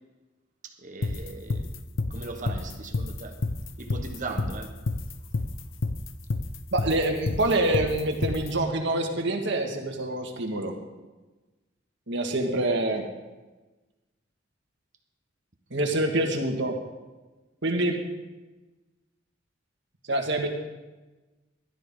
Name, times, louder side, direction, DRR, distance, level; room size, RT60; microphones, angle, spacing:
voice 1, 0.6-1.7 2.1-3.4 3.8-4.7, right 3 dB, 40° right, 1.1 m, -38 dB
sound 1, 1.0-8.5, left 2 dB, 80° left, 0.7 m, -29 dB
voice 2, 6.7-10.7 12.1-13.0 15.7-16.8 17.6-18.0 20.1-20.5, right 1 dB, 65° right, 1.8 m, -26 dB
16.0 x 12.5 x 3.8 m
head